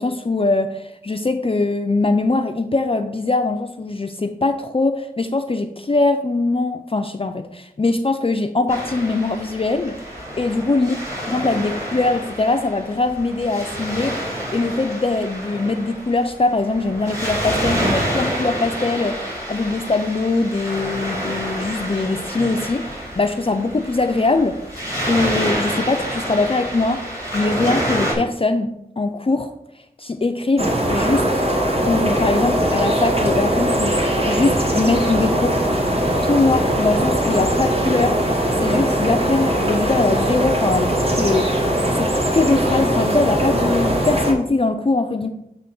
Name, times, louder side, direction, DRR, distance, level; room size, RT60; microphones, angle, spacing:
voice 1, 0.0-10.0 10.4-10.9 11.3-14.2 14.5-28.7 29.0-29.5 30.0-31.4 31.8-35.6 36.2-40.9 41.2-41.5 42.0-45.3, left 3 dB, 40° left, 7 dB, 0.4 m, -22 dB
Waves surf, 8.7-28.1, equal, 20° right, 2.8 m, -28 dB
sound 1, 30.6-44.3, right 1 dB, 40° right, 1.3 m, -20 dB
7.5 x 3.1 x 5.9 m, 0.79 s
wide cardioid pair, 50°, 15 cm